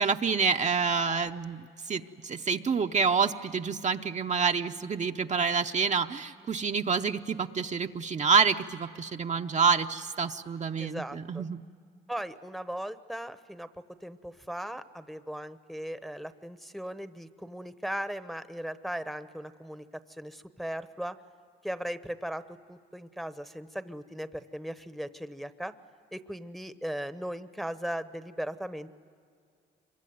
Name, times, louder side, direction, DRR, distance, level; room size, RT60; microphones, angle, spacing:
voice 1, 0.0-11.6, right 5 dB, 35° right, 5 dB, 0.7 m, -28 dB
voice 2, 10.8-11.5 12.1-13.7 14.0-19.9 20.2-21.2 21.6-25.7 26.1-28.9, equal, ahead, 11 dB, 0.9 m, -38 dB
26.0 x 23.5 x 9.3 m, 2.3 s
cardioid pair, 90°, 20 cm